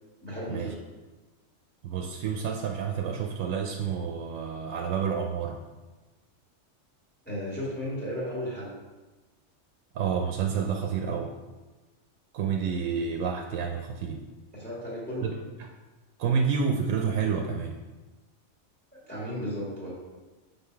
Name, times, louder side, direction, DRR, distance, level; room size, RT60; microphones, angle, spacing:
voice 1, 0.2-0.7 7.2-8.7 14.5-15.3 19.1-19.9, equal, 10° left, -7 dB, 1.6 m, -34 dB
voice 2, 1.8-5.6 9.9-11.3 12.3-14.2 15.2-15.3 15.6-15.7 16.2-17.8, right 6 dB, 90° right, 2 dB, 0.9 m, -29 dB
5.5 x 3.9 x 4.5 m, 1.2 s
omnidirectional pair, 1.3 m